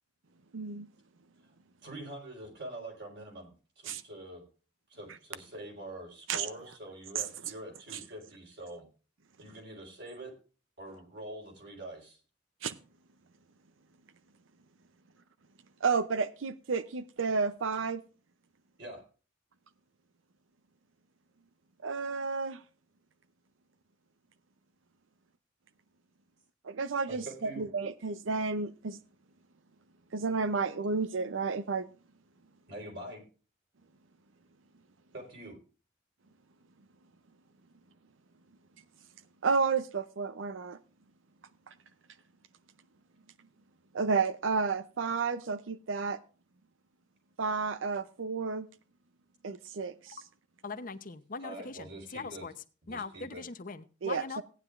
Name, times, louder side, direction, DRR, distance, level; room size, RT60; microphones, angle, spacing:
voice 1, 0.5-0.9 3.9-4.0 6.3-6.5 12.6-12.7 15.8-18.0 21.8-22.6 26.6-29.0 30.1-31.9 39.4-40.8 43.9-46.2 47.4-48.7 49.4-50.2 54.0-54.4, right 4 dB, 80° right, 0.6 m, -31 dB
voice 2, 1.8-4.4 4.9-8.9 9.4-10.3 10.8-12.2 18.8-19.0 27.1-27.6 32.7-33.2 35.1-35.6 51.4-52.5 52.8-53.4, right 1 dB, 60° right, 4.0 m, -45 dB
voice 3, 50.6-52.5 52.9-54.4, left 4 dB, 45° left, 0.8 m, -41 dB
17.0 x 9.6 x 2.5 m
head